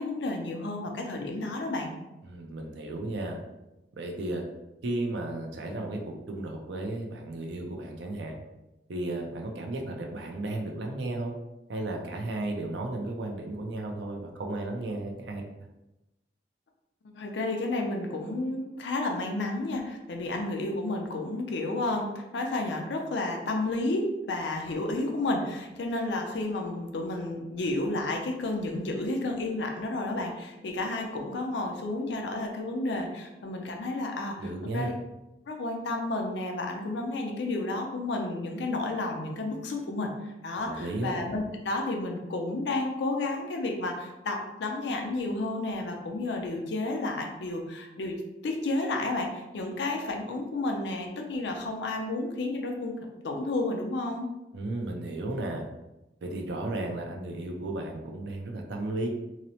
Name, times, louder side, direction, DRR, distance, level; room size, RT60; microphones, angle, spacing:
voice 1, 0.0-1.9 17.1-34.9 35.5-48.2 48.4-53.0 53.2-54.3, left 2 dB, 70° left, 2 dB, 0.4 m, -31 dB
voice 2, 2.2-3.4 4.0-4.4 4.8-8.3 8.9-11.3 11.7-15.4 34.4-34.9 40.6-41.1 54.5-55.6 56.2-59.1, right 2 dB, 70° right, 2 dB, 0.4 m, -34 dB
2.8 x 2.0 x 2.7 m, 0.97 s
head